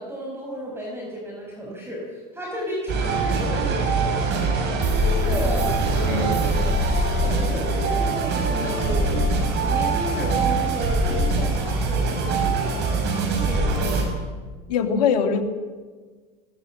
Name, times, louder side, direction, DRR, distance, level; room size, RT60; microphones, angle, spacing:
voice 1, 0.0-5.7 6.0-6.7 7.1-14.0, equal, 10° right, -2 dB, 5.9 m, -33 dB
sound 1, 2.9-14.0, right 3 dB, 55° right, 6.5 m, -23 dB
voice 2, 6.0-6.4 14.7-15.4, left 6 dB, 80° left, 6 dB, 2.4 m, -22 dB
19.5 x 18.5 x 7.8 m, 1.4 s
hypercardioid pair, 85°, 21 cm